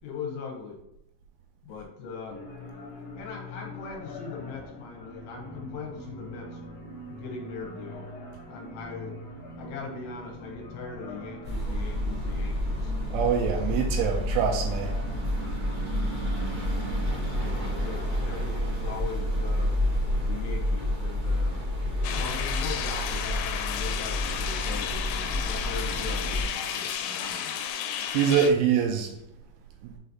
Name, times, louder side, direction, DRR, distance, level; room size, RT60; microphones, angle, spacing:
voice 1, 0.0-0.8 1.6-2.4 3.1-6.7 7.1-8.1 8.5-9.2 9.6-12.9 14.4-14.5 17.3-19.7 20.2-21.6 22.1-27.6, left 5 dB, 75° left, 3.3 m, -40 dB
sound 1, 2.3-18.1, left 3 dB, 55° left, 2.1 m, -43 dB
sound 2, 11.4-26.4, equal, 60° right, 1.3 m, -29 dB
voice 2, 13.1-14.9 28.1-29.1 29.8-29.9, right 7 dB, 85° right, 2.9 m, -24 dB
sound 3, 22.0-28.5, left 9 dB, 90° left, 3.3 m, -32 dB
7.7 x 3.2 x 4.0 m
omnidirectional pair, 5.8 m